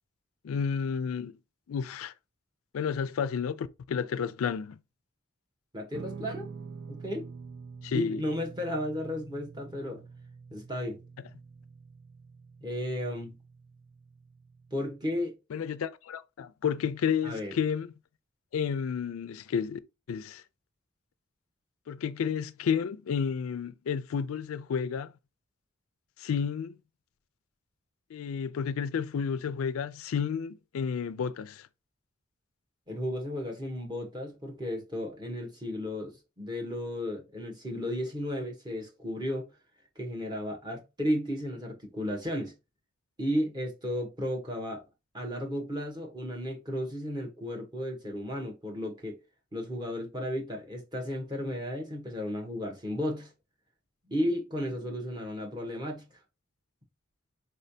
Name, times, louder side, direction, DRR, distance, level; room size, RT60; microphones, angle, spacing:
voice 1, 0.4-1.3 1.7-2.1 2.7-4.8 7.8-8.2 15.5-17.9 18.5-19.8 20.1-20.4 21.9-25.1 26.2-26.8 28.1-31.7, left 7 dB, 90° left, 0.4 m, -31 dB
voice 2, 5.7-6.5 6.9-7.3 7.9-10.0 10.5-11.0 12.6-13.3 14.7-15.4 17.2-17.5 32.9-39.5 40.0-42.5 43.2-44.8 45.1-49.2 49.5-53.3 54.1-56.0, equal, 20° right, 1.1 m, -34 dB
Guitar, 5.9-15.2, right 5 dB, 85° right, 0.5 m, -47 dB
4.5 x 3.2 x 2.7 m
head